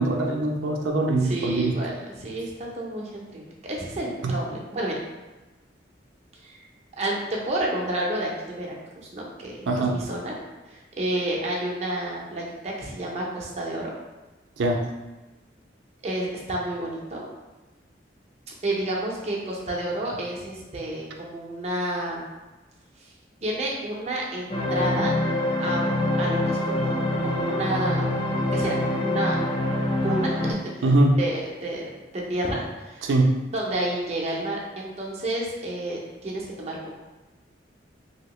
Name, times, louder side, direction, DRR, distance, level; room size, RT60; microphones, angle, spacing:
voice 1, 0.0-1.8 4.2-4.4 9.7-10.0 14.6-14.9 30.8-31.2 33.0-33.4, right 2 dB, 90° right, 1 dB, 0.4 m, -22 dB
voice 2, 1.2-5.0 6.4-6.6 7.0-10.3 10.7-13.9 16.0-17.3 18.6-22.2 23.0-23.1 23.4-25.2 25.6-28.1 28.5-29.4 30.0-30.8 31.2-33.0 33.5-36.9, right 1 dB, 35° right, -2 dB, 0.6 m, -30 dB
sound 1, 24.5-30.5, left 1 dB, 25° left, 0.4 m, -25 dB
2.9 x 2.7 x 3.0 m, 1.1 s
head